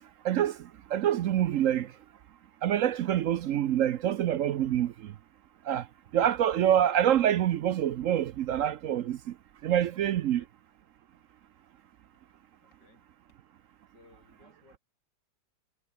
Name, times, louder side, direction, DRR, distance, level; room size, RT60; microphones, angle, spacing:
voice 1, 0.2-0.6 0.9-1.9 2.6-4.9 5.7-5.8 6.1-9.2 9.6-10.4, right 10 dB, 65° right, 0.8 m, -26 dB
voice 2, 10.2-10.5 12.6-13.1 13.9-14.8, left 3 dB, 70° left, 6.0 m, -61 dB
omnidirectional pair, 1.9 m